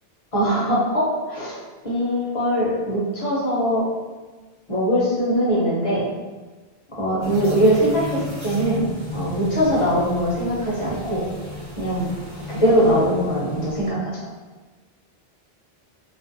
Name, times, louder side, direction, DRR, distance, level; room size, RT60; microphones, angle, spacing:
voice 1, 0.3-1.6 1.8-3.9 4.7-6.0 7.0-8.8 9.1-11.2 11.8-12.1 12.5-14.2, equal, 40° left, -8 dB, 0.6 m, -21 dB
sound 1, 7.2-13.9, left 1 dB, 20° right, 0.9 m, -34 dB
2.4 x 2.1 x 2.5 m, 1.3 s
omnidirectional pair, 1.0 m